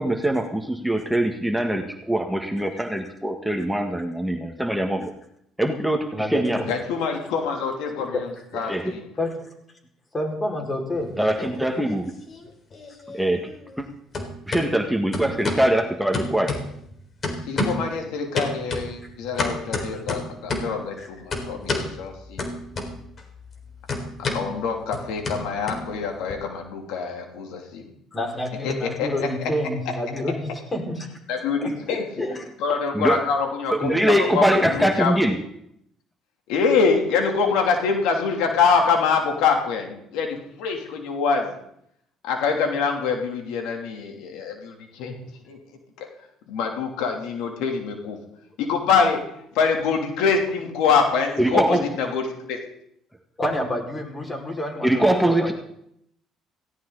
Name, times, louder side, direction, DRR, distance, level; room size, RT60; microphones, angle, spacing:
voice 1, 0.0-5.1 5.6-6.6 8.7-8.9 11.2-12.1 13.1-13.5 13.8-13.9 14.5-16.5 32.9-33.2 33.7-35.4 51.4-51.8 54.8-55.5, right 1 dB, ahead, 4 dB, 1.9 m, -22 dB
voice 2, 6.1-6.7 8.1-8.2 8.5-8.6 9.2-9.3 10.1-11.6 19.9-20.0 21.0-21.1 28.1-31.1 31.6-32.4 34.6-34.8 53.4-55.5, left 1 dB, 25° left, 2 dB, 5.4 m, -29 dB
voice 3, 6.7-8.3 8.5-9.1 17.5-22.4 24.2-27.8 28.6-29.5 31.3-32.0 32.6-35.1 36.5-41.6 42.2-45.1 45.5-45.6 46.0-46.1 46.5-48.2 48.6-49.2 49.5-52.6, left 5 dB, 80° left, 3 dB, 3.1 m, -25 dB
sound 1, 11.0-12.0 12.3-13.9 14.1-14.6 15.1-15.7 16.1-16.9 17.2-17.9 18.3-20.8 21.3-21.9 22.4-23.2 23.5-26.3, left 2 dB, 40° left, 4.0 m, -29 dB
17.5 x 16.5 x 4.1 m, 0.72 s
supercardioid pair, 85°, 0 cm